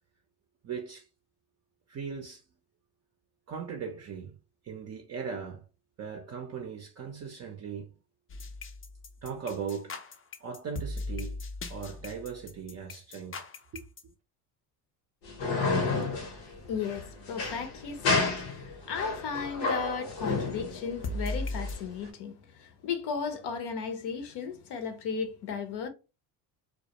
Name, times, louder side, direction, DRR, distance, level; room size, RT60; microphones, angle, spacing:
voice 1, 0.6-1.1 1.9-2.4 3.5-4.3 4.6-5.6 6.0-7.9 9.2-10.1 10.4-11.4 11.7-13.8, right 6 dB, 35° right, 0.4 m, -38 dB
sound 1, 8.3-14.0 21.0-21.7, left 2 dB, 30° left, 0.4 m, -37 dB
sound 2, 15.2-22.1, left 3 dB, 90° left, 1.0 m, -31 dB
voice 2, 16.7-25.9, left 6 dB, 65° left, 0.7 m, -35 dB
2.2 x 2.0 x 2.8 m
supercardioid pair, 90°, 45 cm